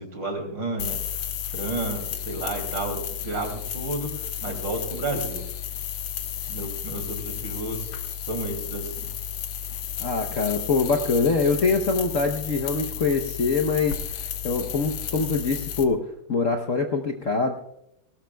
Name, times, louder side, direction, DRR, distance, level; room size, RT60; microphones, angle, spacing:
voice 1, 0.0-5.4 6.5-9.1, right 2 dB, 60° right, 4 dB, 3.5 m, -32 dB
sound 1, 0.8-15.8, left 9 dB, 85° left, 2.0 m, -33 dB
voice 2, 10.0-14.0 14.4-17.6, left 4 dB, 50° left, 3 dB, 1.0 m, -24 dB
19.0 x 18.0 x 2.3 m, 0.83 s
omnidirectional pair, 2.3 m